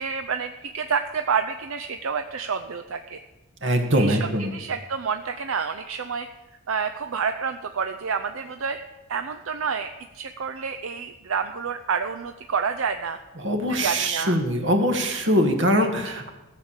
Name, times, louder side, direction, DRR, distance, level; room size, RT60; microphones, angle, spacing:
voice 1, 0.0-3.2 3.9-6.3 6.7-8.8 9.1-9.9 10.1-13.2 13.7-14.4, right 6 dB, 80° right, 7 dB, 0.6 m, -28 dB
voice 2, 3.6-4.5 13.4-16.3, equal, 55° right, 4 dB, 1.7 m, -22 dB
15.0 x 6.8 x 7.3 m, 1.1 s
head